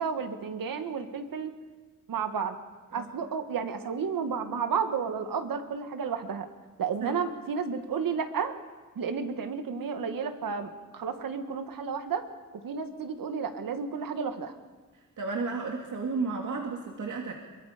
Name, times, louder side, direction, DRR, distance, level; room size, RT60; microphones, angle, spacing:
voice 1, 0.0-1.5 2.1-2.6 2.9-6.5 6.8-8.5 9.0-12.3 12.6-14.6, right 6 dB, 80° right, 7 dB, 1.9 m, -32 dB
voice 2, 15.2-17.3, right 4 dB, 65° right, 1 dB, 2.2 m, -33 dB
23.5 x 23.5 x 5.2 m, 1.3 s
cardioid pair, 90°, 33 cm